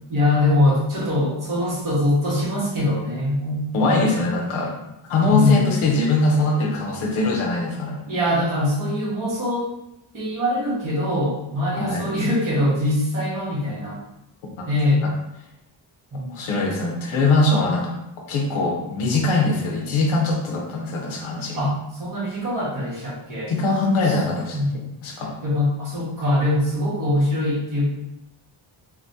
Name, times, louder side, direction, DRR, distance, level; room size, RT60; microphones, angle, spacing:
voice 1, 0.1-3.9 5.3-5.9 8.1-9.7 10.1-14.0 14.7-15.0 16.1-16.4 21.6-23.5 24.0-24.2 24.5-24.7 25.4-27.8, left 1 dB, 40° right, -8 dB, 1.4 m, -23 dB
voice 2, 3.7-4.7 5.1-8.0 11.8-12.0 16.3-17.9 18.3-21.7 23.5-25.4, left 2 dB, 80° left, -1 dB, 0.8 m, -22 dB
3.5 x 2.3 x 2.6 m, 0.86 s
wide cardioid pair, 125°, 48 cm